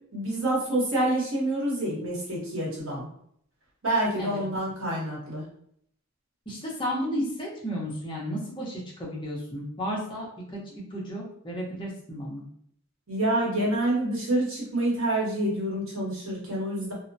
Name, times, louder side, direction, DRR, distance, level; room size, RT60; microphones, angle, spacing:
voice 1, 0.1-3.0 3.8-5.4 13.1-16.9, right 1 dB, 85° right, -4 dB, 1.2 m, -27 dB
voice 2, 6.5-12.4, equal, 25° left, -4 dB, 0.8 m, -33 dB
2.8 x 2.1 x 2.6 m, 0.66 s
head